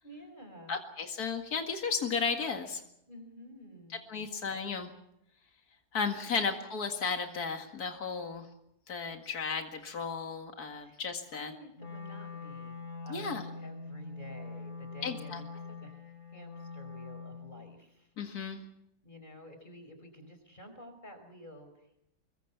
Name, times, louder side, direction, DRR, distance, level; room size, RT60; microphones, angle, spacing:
voice 1, 0.0-0.8 3.1-4.0 10.8-11.0 11.3-12.8 13.0-18.1 19.0-22.0, equal, 30° left, 6 dB, 5.4 m, -51 dB
voice 2, 0.7-2.8 4.1-4.9 5.9-8.5 8.9-11.5 13.1-13.4 15.0-15.4 18.2-18.6, left 5 dB, 75° left, 4 dB, 2.5 m, -34 dB
Wind instrument woodwind instrument, 11.8-17.8, left 4 dB, 55° left, 4.1 m, -44 dB
26.5 x 22.0 x 6.0 m, 0.78 s
omnidirectional pair, 1.6 m